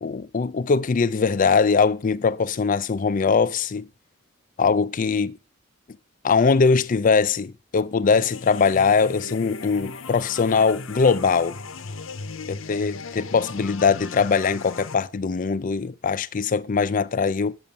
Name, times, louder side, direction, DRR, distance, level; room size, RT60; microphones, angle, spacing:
voice 1, 0.0-3.9 4.6-5.4 6.2-11.6 12.5-17.5, left 5 dB, 40° left, 0.4 m, -21 dB
sound 1, 8.1-14.9, left 4 dB, 80° left, 0.8 m, -37 dB
8.8 x 7.7 x 5.4 m
head